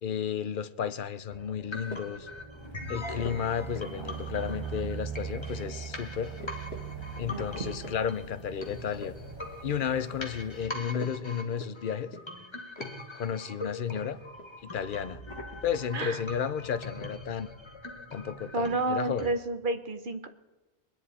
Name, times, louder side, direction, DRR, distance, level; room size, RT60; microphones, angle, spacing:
voice 1, 0.0-2.3 2.9-6.3 7.2-9.1 9.6-12.1 13.1-14.2 14.6-15.2 15.6-17.5 18.1-19.3, left 8 dB, 55° left, 0.8 m, -33 dB
sound 1, 1.3-19.3, left 2 dB, 25° left, 1.4 m, -43 dB
sound 2, 1.7-2.3 3.2-4.0 4.3-5.0 5.4-5.7 6.0-6.1 6.4-6.9 7.2-8.0 8.3-9.2 9.5-10.2 10.6-11.8 12.1-12.4 12.7-13.0 13.3-13.5 13.8-14.6 15.3-16.5 16.7-17.1, left 2 dB, 75° left, 2.0 m, -46 dB
sound 3, 2.3-10.6, right 7 dB, 25° right, 0.9 m, -41 dB
voice 2, 7.3-7.9 15.9-16.2 18.5-20.3, right 2 dB, 50° right, 1.2 m, -31 dB
22.5 x 10.5 x 4.2 m
omnidirectional pair, 1.1 m